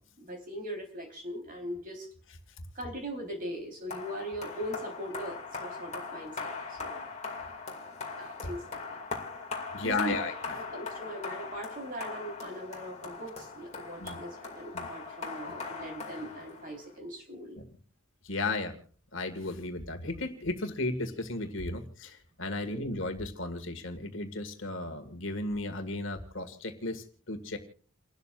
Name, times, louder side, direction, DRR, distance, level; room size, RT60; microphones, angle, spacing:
voice 1, 0.2-2.1 2.7-6.5 6.8-7.0 8.2-9.0 9.8-17.6 22.6-23.0, equal, 40° right, 2 dB, 4.1 m, -40 dB
sound 1, 3.9-16.9, left 4 dB, 30° left, 2.4 m, -40 dB
voice 2, 9.7-10.6 14.0-14.2 14.7-14.9 18.2-18.8 19.1-27.6, left 2 dB, 60° left, 6 dB, 1.9 m, -34 dB
29.5 x 12.5 x 2.5 m, 0.42 s
head